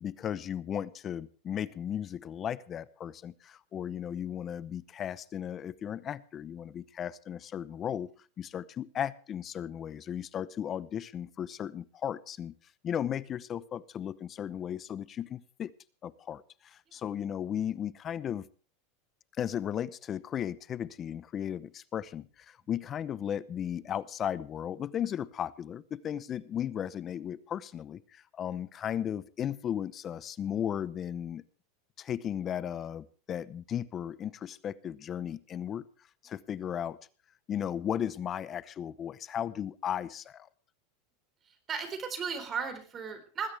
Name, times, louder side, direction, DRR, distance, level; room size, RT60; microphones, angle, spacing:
voice 1, 0.0-8.1 8.4-12.5 12.8-15.7 16.0-18.5 19.4-31.4 32.0-35.9 36.2-37.0 37.5-40.5, left 9 dB, 30° left, 18 dB, 0.8 m, -35 dB
voice 2, 41.4-43.5, right 6 dB, 25° right, 9 dB, 4.0 m, -36 dB
20.5 x 15.5 x 3.4 m, 0.38 s
supercardioid pair, 135°, 0 cm